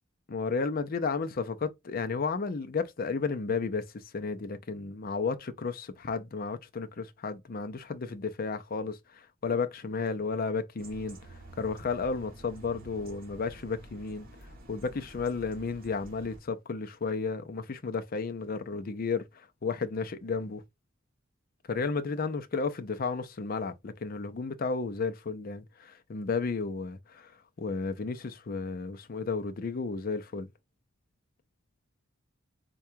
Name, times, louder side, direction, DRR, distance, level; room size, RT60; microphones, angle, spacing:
voice 1, 0.3-11.2 11.6-14.3 14.7-20.6 21.7-27.3 27.6-30.5, left 4 dB, 50° left, 0.5 m, -33 dB
sound 1, 10.8-16.4, right 1 dB, 50° right, 1.6 m, -49 dB
4.5 x 2.3 x 2.6 m
head